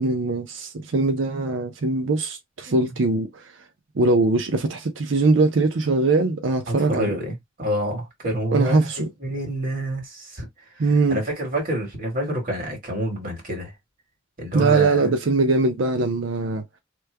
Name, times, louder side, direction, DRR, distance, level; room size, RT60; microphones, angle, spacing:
voice 1, 0.0-3.4 4.0-7.1 8.5-9.1 10.8-11.2 14.5-16.6, right 3 dB, 70° right, 0.6 m, -21 dB
voice 2, 6.7-8.9 9.2-10.5 10.8-13.7 14.4-15.1, equal, 45° right, 1.8 m, -28 dB
3.1 x 2.2 x 3.3 m
head